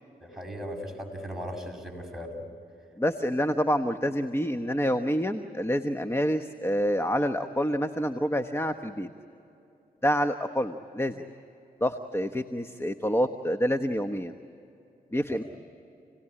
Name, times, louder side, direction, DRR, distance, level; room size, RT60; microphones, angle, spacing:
voice 1, 0.2-2.4, equal, ahead, 1 dB, 7.0 m, -37 dB
voice 2, 3.0-9.1 10.0-11.2 11.8-14.3 15.1-15.4, equal, 15° left, 8 dB, 1.2 m, -27 dB
29.5 x 19.0 x 10.0 m, 2.8 s
cardioid pair, 60°, 17 cm